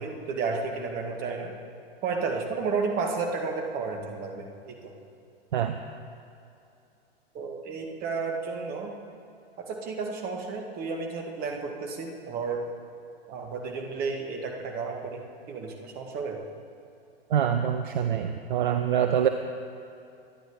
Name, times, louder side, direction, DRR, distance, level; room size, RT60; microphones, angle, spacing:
voice 1, 0.0-1.5 2.0-4.8 7.3-8.9 9.6-12.6 13.3-15.2 15.5-16.4, right 4 dB, 30° right, 2 dB, 2.0 m, -32 dB
voice 2, 17.3-19.3, right 9 dB, 55° right, 8 dB, 0.7 m, -25 dB
24.5 x 10.5 x 3.8 m, 2.6 s
figure-of-eight pair, 100°, 30 cm